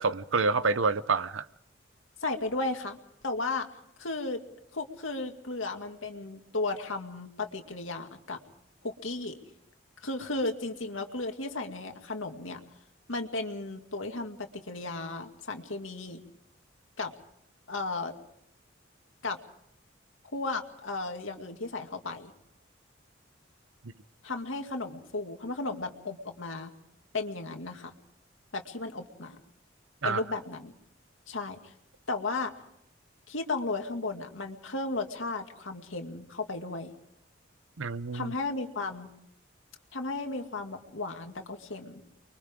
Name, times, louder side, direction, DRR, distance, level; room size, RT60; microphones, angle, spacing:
voice 1, 0.0-1.5 30.0-30.2 37.8-38.3, right 4 dB, 85° right, 0.8 m, -27 dB
voice 2, 2.2-3.0 3.2-3.7 4.0-4.4 4.7-8.4 8.8-9.4 10.0-12.6 13.1-16.2 17.0-17.1 17.7-18.1 19.2-19.4 20.2-22.3 24.2-26.7 27.1-27.9 28.5-29.4 30.0-30.7 31.3-31.7 32.1-32.5 33.3-36.9 38.1-39.1 39.9-42.0, left 3 dB, 90° left, 2.3 m, -34 dB
30.0 x 23.5 x 3.7 m
head